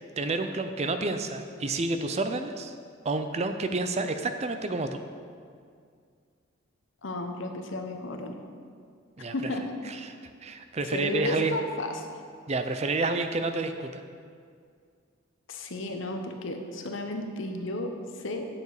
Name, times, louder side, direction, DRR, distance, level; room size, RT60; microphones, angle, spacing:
voice 1, 0.2-2.7 3.0-5.0 9.2-9.3 9.9-10.2 10.4-11.6 12.5-14.0, right 3 dB, 30° right, 8 dB, 0.4 m, -29 dB
voice 2, 7.0-8.4 9.3-9.7 10.9-12.1 15.5-18.4, left 2 dB, 65° left, 4 dB, 0.9 m, -33 dB
9.6 x 7.1 x 4.8 m, 2.2 s
head